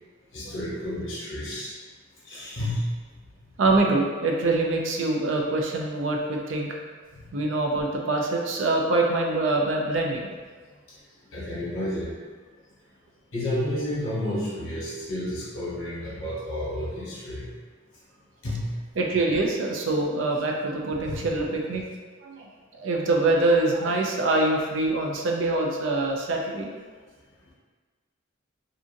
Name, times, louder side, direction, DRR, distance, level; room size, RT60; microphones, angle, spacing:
voice 1, 0.3-1.7 2.2-2.9 7.1-7.3 11.3-12.2 13.3-17.5 18.4-18.7 21.0-21.3, left 1 dB, 70° left, -7 dB, 1.0 m, -31 dB
voice 2, 3.6-6.7 7.3-10.3 19.0-21.8 22.2-22.5 22.7-26.7, right 2 dB, 65° right, 0 dB, 0.4 m, -24 dB
2.7 x 2.4 x 2.6 m, 1.5 s
head